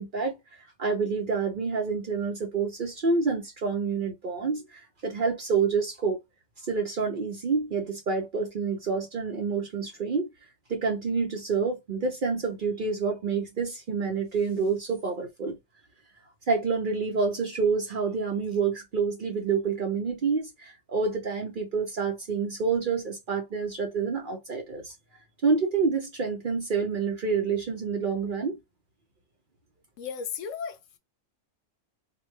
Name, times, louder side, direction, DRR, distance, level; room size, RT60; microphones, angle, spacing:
voice 1, 0.0-6.2 6.7-10.3 10.7-15.6 16.5-24.9 25.4-28.6, right 5 dB, 50° right, 0.7 m, -28 dB
voice 2, 30.0-31.0, left 6 dB, 75° left, 0.9 m, -35 dB
3.0 x 2.3 x 3.1 m
omnidirectional pair, 1.4 m